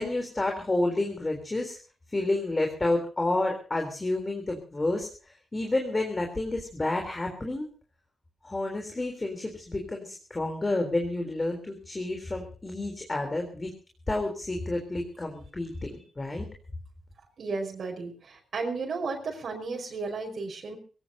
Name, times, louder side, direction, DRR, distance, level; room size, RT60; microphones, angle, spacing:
voice 1, 0.0-1.8 2.1-7.7 8.4-13.7 14.1-16.5, left 2 dB, 25° left, 3 dB, 3.7 m, -30 dB
voice 2, 17.4-20.8, right 4 dB, 60° right, 0 dB, 5.3 m, -34 dB
23.5 x 17.0 x 2.9 m, 0.39 s
cardioid pair, 105°, 0 cm